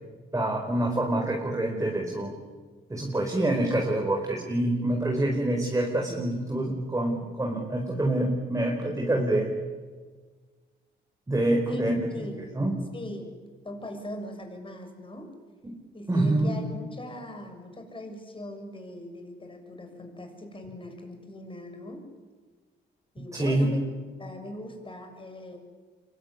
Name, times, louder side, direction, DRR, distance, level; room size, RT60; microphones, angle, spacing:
voice 1, 0.3-2.3 2.9-9.5 11.3-12.3 12.5-12.8 15.6-15.8 16.1-16.6 23.3-23.7, right 1 dB, 15° right, 1 dB, 4.8 m, -26 dB
voice 2, 12.9-13.4 13.6-15.3 15.9-22.0 23.1-23.9 24.2-25.6, left 1 dB, 25° left, 4 dB, 6.9 m, -40 dB
25.5 x 23.0 x 9.8 m, 1.4 s
cardioid pair, 90°, 20 cm